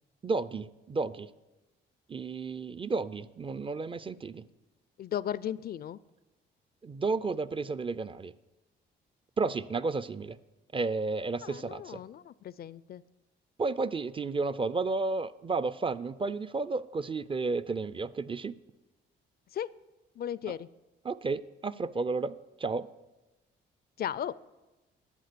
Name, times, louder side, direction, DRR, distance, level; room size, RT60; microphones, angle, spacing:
voice 1, 0.2-1.3 2.1-4.5 6.8-8.3 9.4-10.4 10.7-12.0 13.6-18.6 20.5-20.6 21.0-22.9, right 3 dB, 25° right, 15 dB, 0.4 m, -32 dB
voice 2, 5.0-6.0 11.4-13.0 19.5-19.7 20.2-20.7 24.0-24.3, left 10 dB, 50° left, 19 dB, 0.4 m, -36 dB
12.0 x 8.0 x 6.7 m, 1.1 s
cardioid pair, 90°, 20 cm